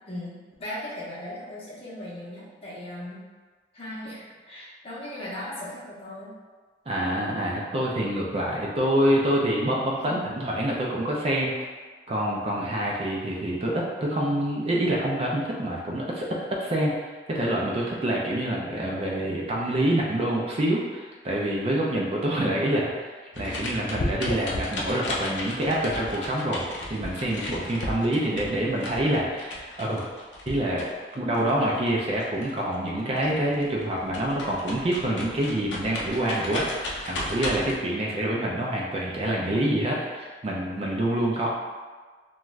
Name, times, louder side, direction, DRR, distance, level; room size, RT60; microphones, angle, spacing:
voice 1, 0.1-3.2 3.7-6.3 9.7-10.2, left 1 dB, 35° left, -7 dB, 0.7 m, -38 dB
voice 2, 6.9-11.5 12.1-16.9 17.3-22.9 23.4-30.1 30.5-30.8 31.1-41.5, right 1 dB, 35° right, -3 dB, 0.4 m, -26 dB
sound 1, 23.3-32.9 33.2-37.7, left 1 dB, 85° left, 0.5 m, -35 dB
2.4 x 2.3 x 3.1 m, 1.4 s
head